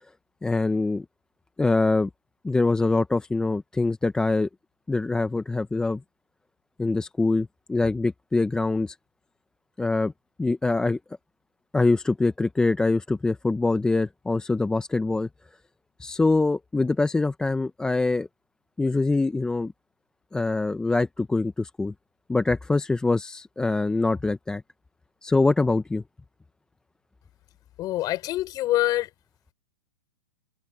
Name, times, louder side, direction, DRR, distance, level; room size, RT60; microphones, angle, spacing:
voice 1, 0.4-1.0 1.6-2.1 2.4-4.5 4.9-6.0 6.8-9.0 9.8-10.1 10.4-11.0 11.7-15.3 16.0-18.3 18.8-19.7 20.3-21.9 22.3-24.6 25.2-26.0, left 3 dB, 5° left, 0.7 m, -24 dB
voice 2, 27.8-29.1, left 15 dB, 30° left, 6.4 m, -25 dB
hypercardioid pair, 135°, 13 cm